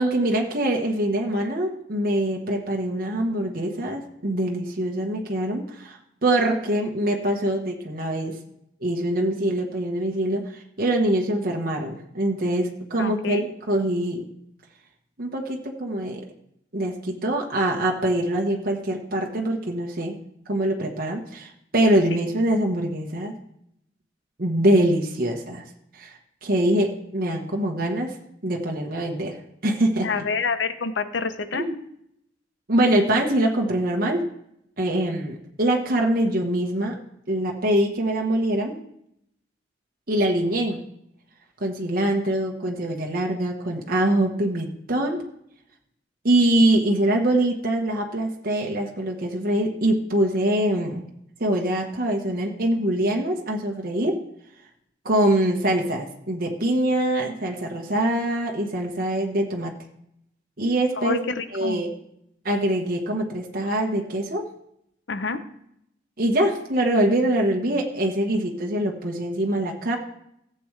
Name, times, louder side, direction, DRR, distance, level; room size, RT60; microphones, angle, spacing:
voice 1, 0.0-8.4 8.8-14.2 15.2-16.2 16.7-20.2 20.5-23.3 24.4-28.1 28.4-30.2 31.5-31.7 32.7-34.2 34.8-37.0 37.3-38.8 40.1-40.8 41.6-45.2 46.2-51.0 51.4-54.2 55.0-59.7 60.6-61.9 62.4-64.5 66.2-70.0, right 1 dB, 50° right, 0 dB, 1.3 m, -24 dB
voice 2, 13.0-13.4 30.0-31.6 61.0-61.8 65.1-65.4, left 4 dB, 75° left, 10 dB, 0.8 m, -27 dB
15.5 x 7.8 x 3.3 m, 0.75 s
head